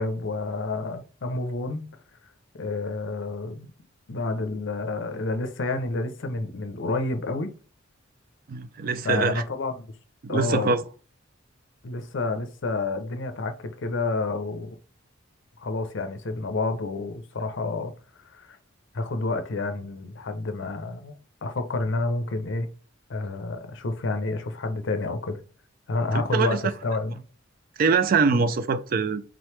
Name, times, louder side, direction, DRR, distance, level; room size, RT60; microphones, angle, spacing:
voice 1, 0.0-1.9 2.5-3.7 4.1-7.5 9.0-9.9 10.3-10.7 11.8-14.8 15.6-17.9 18.3-18.6 18.9-22.7 23.1-25.4 25.9-27.2 28.3-28.4, left 3 dB, 65° left, 0.6 m, -29 dB
voice 2, 8.5-9.4 10.2-10.8 26.3-26.7 27.8-29.2, right 4 dB, 45° right, 0.4 m, -23 dB
3.7 x 3.0 x 3.2 m
head